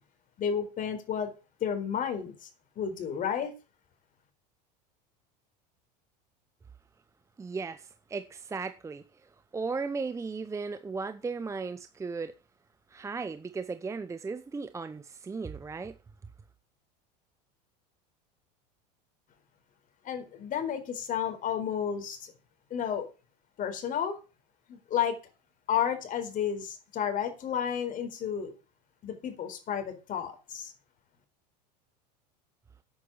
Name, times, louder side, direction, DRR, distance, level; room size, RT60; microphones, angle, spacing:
voice 1, 0.4-1.3 1.6-2.5 2.8-3.5 20.0-22.3 22.7-23.1 23.6-24.2 24.7-25.2 25.7-28.5 29.0-30.7, left 8 dB, 40° left, 4.2 m, -31 dB
voice 2, 7.4-12.3 12.9-16.0, right 4 dB, 15° right, 0.7 m, -36 dB
10.0 x 9.0 x 7.2 m
supercardioid pair, 110°, 21 cm